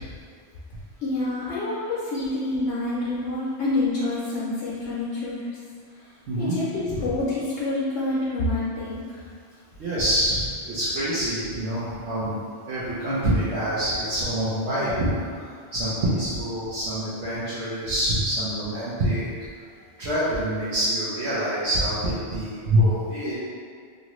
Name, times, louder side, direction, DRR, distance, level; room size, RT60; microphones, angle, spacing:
voice 1, 1.0-5.4 6.4-9.0, left 2 dB, 70° left, -8 dB, 0.9 m, -27 dB
voice 2, 6.3-6.6 6.9-7.2 9.8-12.4 12.7-15.1 15.4-19.3 20.0-23.4, right 1 dB, 70° right, -11 dB, 1.0 m, -26 dB
2.8 x 2.6 x 3.0 m, 2.1 s
omnidirectional pair, 1.3 m